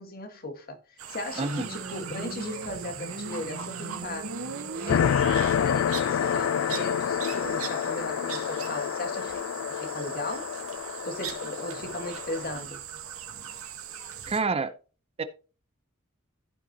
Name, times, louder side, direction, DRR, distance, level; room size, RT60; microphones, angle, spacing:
voice 1, 0.0-4.4 4.8-10.6 11.0-12.8, left 2 dB, 45° left, 1.6 m, -37 dB
sound 1, 1.0-14.4, right 9 dB, 75° right, 2.0 m, -40 dB
voice 2, 1.4-1.7 14.3-14.7 15.2-15.3, right 4 dB, 30° right, 0.6 m, -27 dB
Motorcycle, 1.4-5.7, right 2 dB, 55° right, 1.1 m, -39 dB
sound 2, 4.9-12.5, left 8 dB, 60° left, 0.3 m, -28 dB
15.0 x 5.6 x 2.9 m
head